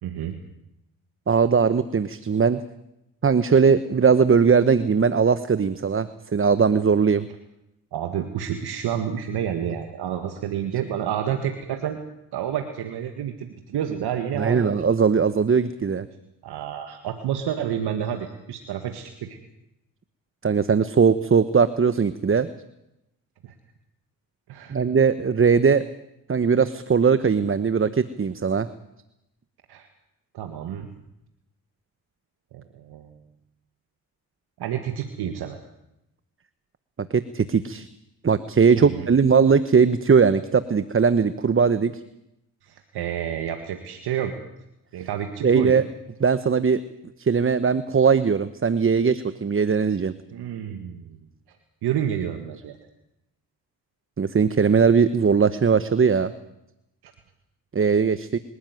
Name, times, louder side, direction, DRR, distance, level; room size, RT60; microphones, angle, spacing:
voice 1, 0.0-0.4 7.9-12.0 12.3-14.7 16.4-19.4 23.4-23.5 24.5-24.8 29.7-29.9 30.3-30.9 32.5-33.2 34.6-35.6 38.8-39.1 42.6-44.3 44.9-45.7 50.3-51.6 51.8-52.8 57.0-57.1, right 9 dB, 80° right, 6 dB, 1.9 m, -29 dB
voice 2, 1.3-2.6 3.2-7.3 14.4-16.1 20.4-22.5 24.7-25.8 26.3-28.7 37.1-37.9 38.2-41.9 45.4-45.8 46.2-46.8 47.2-50.1 54.2-56.3 57.7-58.4, right 6 dB, 35° right, 13 dB, 1.1 m, -19 dB
25.0 x 13.0 x 9.4 m, 0.86 s
supercardioid pair, 60°, 38 cm